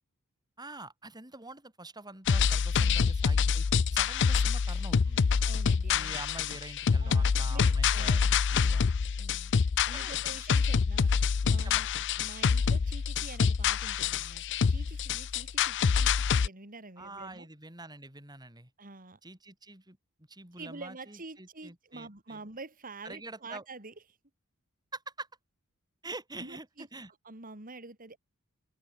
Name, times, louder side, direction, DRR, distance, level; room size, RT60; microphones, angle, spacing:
voice 1, 0.6-3.6 3.9-5.3 5.9-8.2 8.5-8.9 9.9-10.1 11.6-11.9 17.0-18.7 19.2-20.0 20.3-22.4 23.0-23.6 24.9-25.3 26.0-27.1, right 2 dB, 20° right, 5.3 m, -45 dB
sound 1, 2.3-16.5, left 6 dB, 55° left, 0.5 m, -26 dB
voice 2, 2.7-3.1 5.4-6.1 7.0-8.9 9.2-9.5 9.8-17.5 18.8-19.2 20.5-23.9 26.4-26.9 27.2-28.2, right 3 dB, 40° right, 4.1 m, -47 dB
head